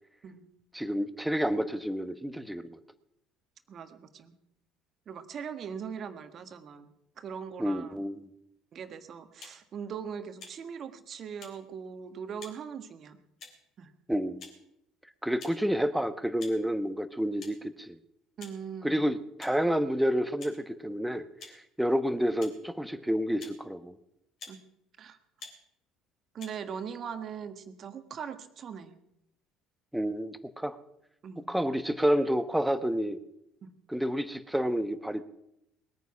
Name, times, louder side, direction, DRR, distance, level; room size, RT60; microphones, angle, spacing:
voice 1, 0.7-2.8 7.6-8.3 14.1-14.5 15.2-18.0 18.8-24.0 29.9-30.8 31.5-33.2 33.9-35.2, equal, 5° right, 12 dB, 1.1 m, -29 dB
voice 2, 3.7-4.4 5.1-8.0 8.7-13.2 13.8-13.9 18.4-19.0 24.5-24.6 25.0-25.2 26.3-29.0 31.2-31.5 33.6-33.7, right 7 dB, 45° right, 9 dB, 1.5 m, -41 dB
sound 1, 9.4-9.6 10.4-10.6 11.4-11.5 12.4-12.6 13.4-13.7 14.4-14.6 15.4-15.6 16.4-16.6 17.4-17.5 18.4-18.6 19.4-19.6 20.4-20.5 21.4-21.5 22.4-22.5 23.4-23.6 24.4-24.6 25.4-25.6 26.4-26.5, left 4 dB, 50° left, 3.6 m, -47 dB
20.5 x 9.4 x 5.9 m, 0.82 s
hypercardioid pair, 60°, 0 cm